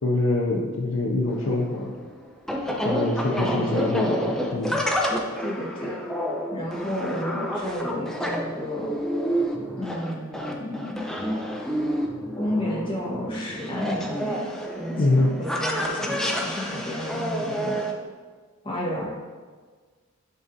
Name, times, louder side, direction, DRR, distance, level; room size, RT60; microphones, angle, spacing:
voice 1, 0.0-1.9 2.8-4.2 4.5-4.8 15.0-15.3, left 2 dB, 65° left, -1 dB, 0.7 m, -24 dB
sound 1, 1.3-17.9, equal, ahead, 0.6 m, -29 dB
voice 2, 3.3-3.9 5.4-6.0 6.5-8.9 9.7-11.0 12.4-17.8 18.6-19.1, left 1 dB, 25° left, -4 dB, 1.5 m, -31 dB
10.5 x 3.7 x 2.8 m, 1.5 s
head